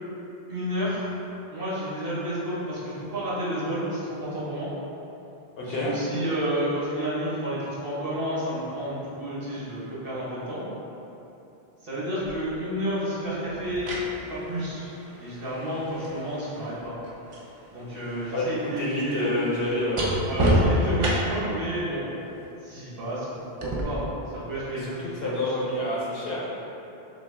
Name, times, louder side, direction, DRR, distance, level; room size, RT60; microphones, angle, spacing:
voice 1, 0.5-1.1 1.5-4.7 5.6-10.6 11.8-13.9 14.3-14.9 15.2-16.9 17.7-19.7 20.2-22.1 22.6-24.0 24.5-25.3, equal, 65° right, -9 dB, 1.4 m, -31 dB
voice 2, 5.5-5.9 18.3-20.0 24.7-26.6, left 1 dB, 70° left, -5 dB, 1.0 m, -28 dB
sound 1, 12.2-12.4 13.5-17.5 17.8-21.6 23.6-23.8, equal, 40° right, 0.5 m, -29 dB
5.8 x 2.1 x 3.5 m, 2.9 s
omnidirectional pair, 1.0 m